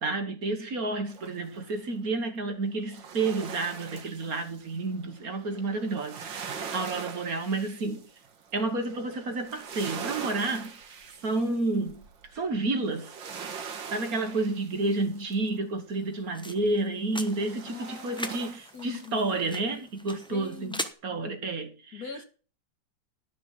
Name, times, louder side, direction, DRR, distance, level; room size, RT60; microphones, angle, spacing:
voice 1, 0.0-8.0 8.5-10.8 11.2-12.0 12.3-13.2 13.9-22.0, right 3 dB, 50° right, 1.8 m, -30 dB
sound 1, 1.1-1.7 2.8-15.6 17.2-19.3 19.7-19.8, right 6 dB, 80° right, 2.3 m, -42 dB
sound 2, 15.9-20.9, left 1 dB, 5° left, 0.6 m, -41 dB
voice 2, 17.7-19.2 20.3-20.8 21.1-21.2 21.9-22.2, left 6 dB, 55° left, 2.0 m, -42 dB
12.5 x 6.6 x 6.1 m
omnidirectional pair, 2.0 m